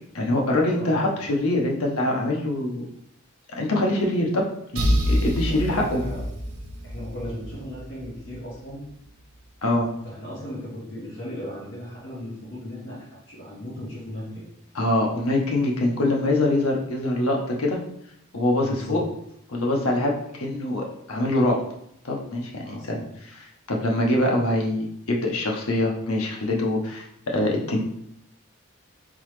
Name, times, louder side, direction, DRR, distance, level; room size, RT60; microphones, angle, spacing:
voice 1, 0.1-2.8 3.6-4.4 4.7-6.0 9.6-9.9 14.7-17.8 18.3-19.0 19.5-21.6 22.0-23.0 23.2-27.8, left 1 dB, 90° left, 0 dB, 0.9 m, -24 dB
sound 1, 4.8-8.4, equal, 90° right, 0.7 m, -27 dB
voice 2, 5.4-6.3 6.8-8.8 10.0-14.4 18.6-19.0 22.6-23.0, equal, 55° left, -8 dB, 1.3 m, -36 dB
3.9 x 3.8 x 3.2 m, 0.74 s
head